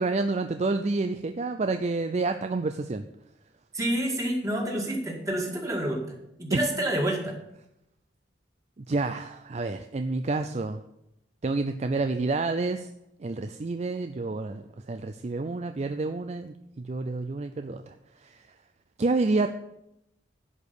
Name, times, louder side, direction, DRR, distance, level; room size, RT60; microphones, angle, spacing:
voice 1, 0.0-3.0 6.5-6.8 8.8-10.8 11.4-12.9 13.2-17.9 18.2-18.4 19.0-19.5, right 3 dB, 35° right, 8 dB, 0.4 m, -29 dB
voice 2, 3.7-7.4, right 1 dB, 15° right, 0 dB, 2.0 m, -28 dB
11.0 x 5.2 x 8.6 m, 0.83 s
head